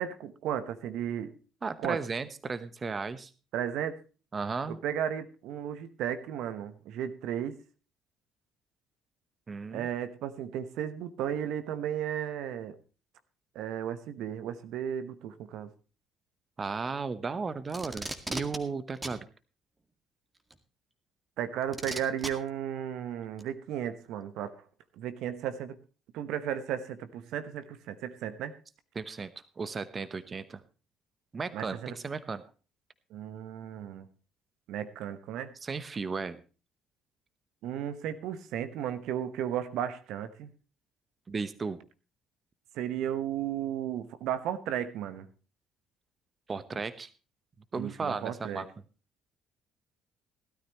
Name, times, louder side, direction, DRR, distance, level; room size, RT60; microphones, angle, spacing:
voice 1, 0.0-1.4 1.8-2.0 3.5-4.0 4.7-7.6 9.7-12.8 13.5-15.7 21.4-24.5 25.0-25.8 26.1-28.5 31.5-31.9 33.1-34.1 34.7-35.5 37.6-40.5 42.7-45.3 47.7-48.6, right 10 dB, 65° right, 12 dB, 1.1 m, -34 dB
voice 2, 1.6-3.3 4.3-4.8 9.5-9.9 16.6-19.3 28.9-30.6 31.3-32.4 35.6-36.4 41.3-41.8 46.5-47.1 47.7-48.7, right 4 dB, 35° right, 14 dB, 1.0 m, -35 dB
Packing tape duct tape, 17.7-18.6 19.0-19.2 20.5-20.6 21.7-22.3 23.4-23.5, right 2 dB, 20° right, 2.0 m, -36 dB
16.5 x 13.0 x 3.1 m, 0.34 s
hypercardioid pair, 55°, 0 cm